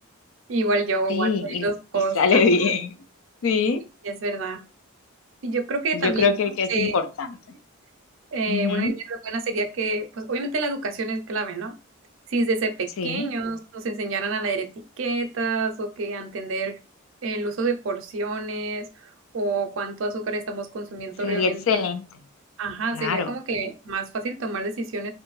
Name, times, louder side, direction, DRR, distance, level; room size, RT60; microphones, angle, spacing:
voice 1, 0.5-2.4 4.0-4.6 5.4-6.3 6.7-7.0 8.3-11.8 12.3-14.7 15.0-16.7 17.2-21.6 22.6-25.1, right 3 dB, 65° right, 6 dB, 0.5 m, -28 dB
voice 2, 1.1-1.7 1.9-2.9 3.4-3.8 5.9-7.4 8.5-8.9 13.0-13.3 21.2-22.0 22.9-23.3, left 5 dB, 75° left, 9 dB, 0.4 m, -23 dB
2.6 x 2.1 x 3.0 m, 0.31 s
head